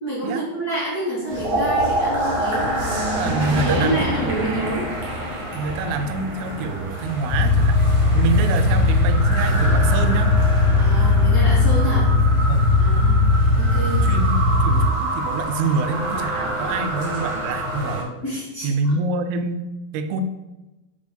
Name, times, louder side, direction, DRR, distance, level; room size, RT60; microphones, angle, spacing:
voice 1, 0.0-4.9 10.8-12.1 12.8-13.2 13.6-14.1 18.2-18.7, right 1 dB, 50° left, -9 dB, 1.1 m, -28 dB
sound 1, 1.3-18.0, right 1 dB, 60° right, 1.3 m, -27 dB
voice 2, 3.1-4.5 5.5-10.3 12.5-12.7 14.0-18.1 18.6-19.7 19.9-20.2, right 4 dB, 85° right, 8 dB, 2.5 m, -26 dB
sound 2, 7.3-14.9, left 2 dB, 85° left, 2.5 m, -18 dB
5.8 x 3.7 x 5.1 m, 1.0 s
omnidirectional pair, 4.4 m